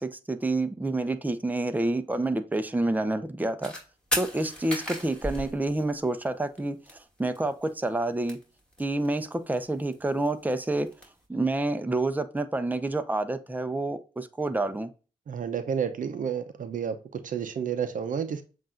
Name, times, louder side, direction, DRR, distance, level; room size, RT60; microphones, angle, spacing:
voice 1, 0.0-3.7 4.2-8.4 8.8-10.9 11.3-14.9, right 2 dB, 10° right, 0.7 m, -28 dB
sound 1, 3.6-3.8 4.1-6.2 6.6-6.7 6.9-7.0 7.2-7.7 8.0-9.2 9.5-11.1, left 1 dB, 5° left, 2.3 m, -34 dB
voice 2, 15.3-18.4, right 7 dB, 60° right, 0.7 m, -31 dB
7.5 x 2.6 x 2.4 m
supercardioid pair, 45°, 15 cm